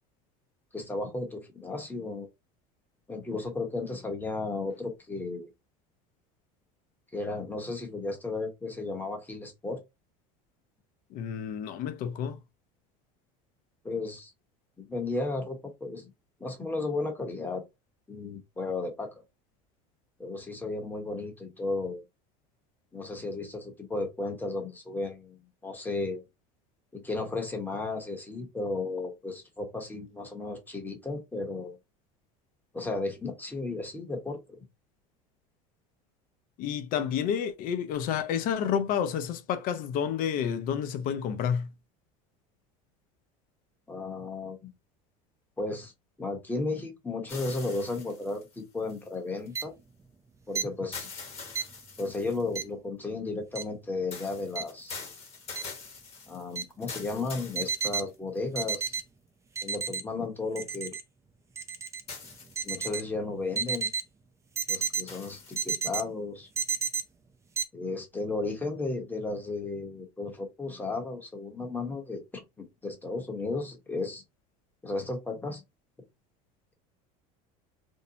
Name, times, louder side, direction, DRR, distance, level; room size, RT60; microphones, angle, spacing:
voice 1, 0.7-2.3 3.1-5.5 7.1-9.8 13.8-14.3 14.8-16.1 16.4-17.6 18.1-19.2 20.2-22.0 22.9-26.2 26.9-31.8 32.7-34.6 43.9-44.7 45.6-45.9 46.2-49.7 50.5-51.1 52.0-55.0 56.3-58.9 59.6-60.9 62.6-63.9 64.7-66.5 67.7-74.2 74.8-75.6, left 3 dB, 10° left, 0.8 m, -34 dB
voice 2, 11.1-12.4 36.6-41.7, left 8 dB, 55° left, 0.5 m, -30 dB
sound 1, 47.3-49.5 50.9-52.5 54.1-58.4 59.0-59.1 62.1-62.9 65.1-65.8, left 4 dB, 35° left, 1.2 m, -44 dB
sound 2, 49.6-49.7 50.6-50.7 51.6-51.7 52.6-52.7 53.6-53.7 54.6-54.7 55.6-55.7 56.6-56.7 57.6-58.0 58.6-59.0 59.6-60.0 60.6-61.0 61.6-62.0 62.6-63.0 63.6-64.0 64.6-65.0 65.6-66.0 66.6-67.0 67.6-67.7, right 6 dB, 15° right, 0.4 m, -30 dB
2.7 x 2.0 x 2.7 m
supercardioid pair, 115°, 18 cm